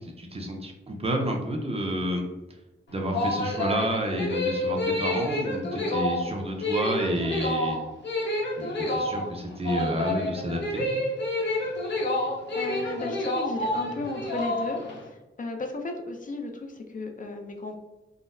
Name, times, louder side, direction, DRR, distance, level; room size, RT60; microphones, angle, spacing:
voice 1, 0.0-2.2 2.9-7.8 8.6-11.0, equal, 30° right, 2 dB, 0.5 m, -30 dB
sound 1, 2.9-15.0, left 1 dB, 65° left, 0.8 m, -29 dB
voice 2, 12.1-14.8 15.1-17.8, left 2 dB, 40° left, 4 dB, 0.4 m, -35 dB
3.8 x 2.0 x 2.5 m, 1.1 s
wide cardioid pair, 120°, 20 cm